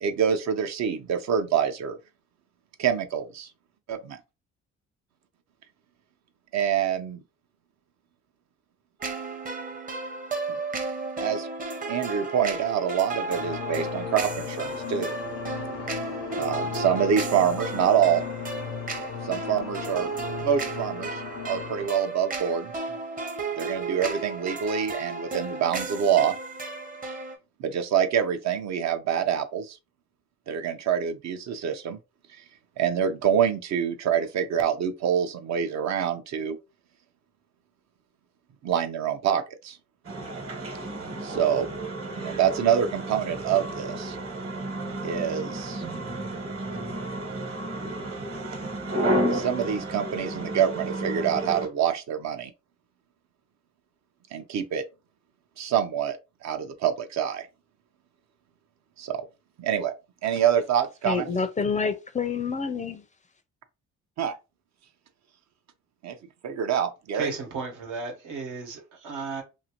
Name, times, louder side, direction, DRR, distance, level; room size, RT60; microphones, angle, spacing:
voice 1, 0.0-2.0 2.8-3.5 3.9-4.2 6.5-7.2 10.5-10.6 11.2-11.5 11.9-15.2 16.4-18.2 19.2-20.1 20.4-22.7 23.6-26.3 27.6-29.8 30.5-32.0 32.8-36.6 38.6-39.8 41.2-41.7 42.1-44.2 45.0-45.8 49.3-52.5 54.3-54.8 55.6-56.2 56.4-57.5 59.0-59.2 59.6-59.9 60.2-61.3 64.2-64.3 66.0-66.2 66.4-67.3, right 8 dB, 65° right, 0.6 m, -26 dB
sound 1, 9.0-27.4, right 3 dB, 30° right, 0.7 m, -34 dB
sound 2, 13.3-21.9, left 8 dB, 80° left, 0.6 m, -37 dB
sound 3, 40.0-51.7, right 1 dB, 50° right, 1.2 m, -32 dB
voice 2, 61.0-63.0, left 5 dB, 25° left, 0.4 m, -28 dB
voice 3, 67.1-69.4, right 4 dB, 85° right, 1.2 m, -34 dB
2.6 x 2.5 x 2.9 m
cardioid pair, 90°, 30 cm